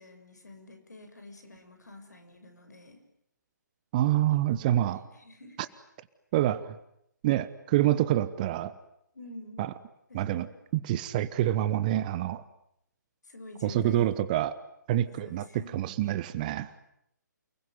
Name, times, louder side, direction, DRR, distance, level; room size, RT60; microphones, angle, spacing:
voice 1, 0.0-3.0 4.3-5.7 9.1-9.7 10.1-10.5 13.2-14.2 15.1-15.9, left 2 dB, 65° left, 7 dB, 7.0 m, -49 dB
voice 2, 3.9-5.0 6.3-6.8 7.2-8.7 9.6-9.7 10.1-10.5 10.7-12.4 13.6-14.6 14.9-15.4 15.7-16.7, right 13 dB, 25° right, 16 dB, 1.0 m, -26 dB
29.5 x 20.5 x 9.6 m, 0.78 s
figure-of-eight pair, 135°, 10 cm